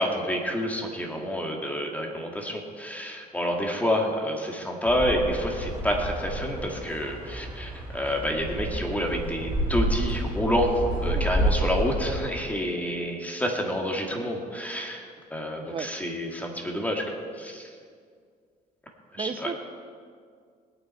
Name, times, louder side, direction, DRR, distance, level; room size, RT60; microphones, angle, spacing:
voice 1, 0.0-10.7 11.0-17.7 19.1-19.5, equal, 10° left, 1 dB, 2.2 m, -28 dB
sound 1, 4.9-12.2, right 1 dB, 10° right, 3.9 m, -30 dB
voice 2, 11.1-11.7 15.7-15.9 19.2-19.6, right 5 dB, 30° right, 9 dB, 1.0 m, -35 dB
20.0 x 9.1 x 4.5 m, 2.1 s
cardioid pair, 110°, 17 cm